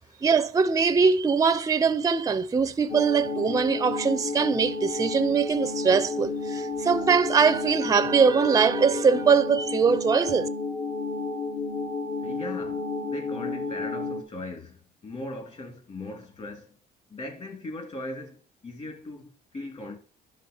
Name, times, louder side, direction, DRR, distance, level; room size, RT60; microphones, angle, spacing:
voice 1, 0.2-10.5, right 5 dB, 20° right, 0.6 m, -22 dB
sound 1, 2.9-14.2, left 3 dB, 60° left, 2.2 m, -31 dB
voice 2, 12.2-16.8 17.1-20.0, left 2 dB, 40° left, 3.3 m, -39 dB
11.0 x 3.7 x 7.0 m
cardioid pair, 110°, 17 cm